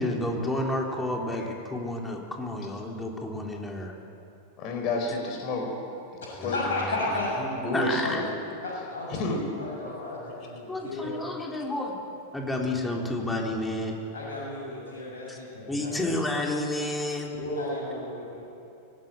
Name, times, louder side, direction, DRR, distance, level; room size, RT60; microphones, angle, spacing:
voice 1, 0.0-3.9 6.4-7.2 7.7-8.2 10.7-12.0 12.3-14.0 15.3-15.4 15.7-17.3, left 1 dB, 10° left, 0 dB, 3.6 m, -30 dB
voice 2, 4.6-5.6 6.4-6.6 7.4-8.2 9.1-9.4, left 2 dB, 40° left, 3 dB, 4.6 m, -29 dB
voice 3, 6.4-7.3 8.0-8.1 8.6-9.3 9.6-11.1 14.1-16.1 17.3-18.4, left 2 dB, 65° left, -5 dB, 6.5 m, -33 dB
24.0 x 18.0 x 9.0 m, 2.8 s
figure-of-eight pair, 90°, 0 cm